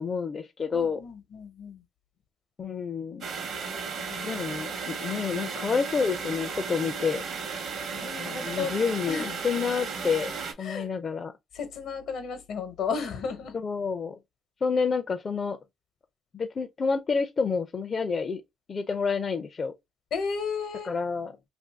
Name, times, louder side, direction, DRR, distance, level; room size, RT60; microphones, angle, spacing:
voice 1, 0.0-1.0 2.6-3.2 4.2-7.2 8.2-10.3 10.6-11.3 13.6-14.2 14.6-15.6 16.3-18.4 18.7-19.7 20.8-21.3, left 5 dB, 40° left, 0.4 m, -29 dB
voice 2, 0.7-1.8 4.1-4.4 8.0-8.7 9.1-9.4 10.6-10.9 11.5-13.6 20.1-20.9, left 6 dB, 75° left, 1.0 m, -34 dB
sound 1, 3.2-10.5, right 5 dB, 70° right, 0.8 m, -35 dB
2.7 x 2.6 x 3.4 m
cardioid pair, 105°, 0 cm